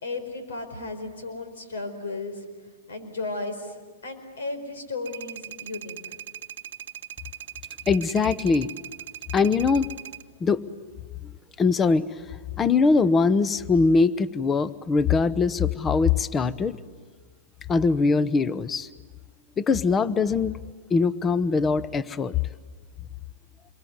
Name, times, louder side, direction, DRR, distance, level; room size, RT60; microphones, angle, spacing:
voice 1, 0.0-2.4 2.9-6.2, left 3 dB, 85° left, 8 dB, 4.6 m, -35 dB
sound 1, 5.1-10.2, right 11 dB, 75° right, 0.9 m, -40 dB
voice 2, 7.9-8.7 9.3-9.9 10.4-10.6 11.6-12.1 12.6-16.8 17.7-18.9 19.6-20.6 20.9-22.4, left 4 dB, 20° left, 17 dB, 0.8 m, -22 dB
27.0 x 23.0 x 9.5 m, 1.5 s
hypercardioid pair, 125°, 0 cm